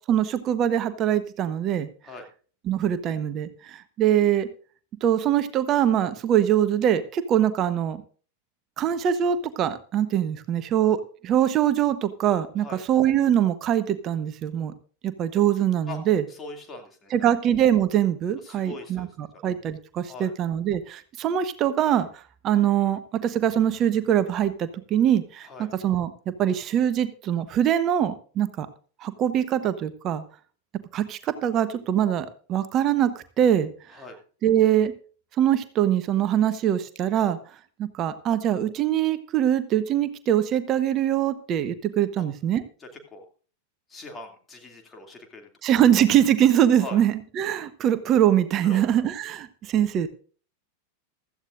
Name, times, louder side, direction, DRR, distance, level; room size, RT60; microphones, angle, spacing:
voice 1, 0.1-1.9 2.6-4.5 5.0-8.0 8.8-11.0 11.2-14.7 15.0-16.2 17.1-22.1 22.4-26.1 26.4-28.7 29.0-30.2 30.9-33.1 33.4-33.7 34.4-34.9 35.4-37.4 37.8-42.6 45.6-50.1, right 10 dB, 35° right, 12 dB, 1.0 m, -23 dB
voice 2, 16.3-17.1 18.4-19.1 20.0-20.3 25.4-25.7 33.9-34.2 42.2-42.3 42.8-43.3 43.9-45.5 46.8-47.0 48.6-49.0, left 2 dB, 15° left, 2 dB, 2.6 m, -41 dB
16.0 x 13.5 x 2.6 m, 0.40 s
figure-of-eight pair, 90°, 0 cm